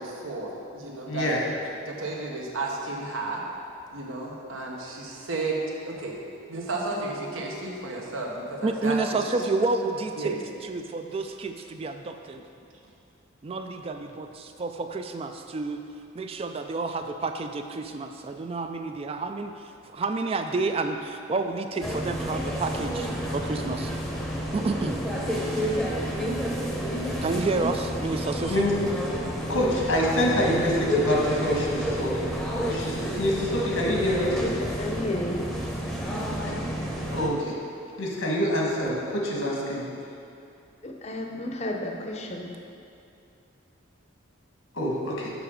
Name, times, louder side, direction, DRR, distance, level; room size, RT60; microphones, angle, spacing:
voice 1, 0.0-1.3 1.8-3.4 3.9-6.2 6.5-9.4 10.2-10.4, right 2 dB, 85° right, -1 dB, 1.1 m, -33 dB
voice 2, 1.1-1.4 28.5-28.7 29.2-32.3 32.7-34.4 36.4-36.5 37.1-37.6 38.0-39.8 44.7-45.3, equal, 85° left, -3 dB, 1.5 m, -26 dB
voice 3, 8.6-10.4 10.6-12.4 13.4-15.8 16.1-19.5 19.9-23.9 24.5-25.0 27.2-28.7, right 3 dB, 30° right, 6 dB, 0.3 m, -29 dB
sound 1, 21.8-37.3, equal, ahead, 0.7 m, -30 dB
voice 4, 34.4-35.5 40.8-42.5, left 1 dB, 35° left, 2 dB, 0.7 m, -32 dB
7.0 x 5.5 x 5.0 m, 2.6 s
head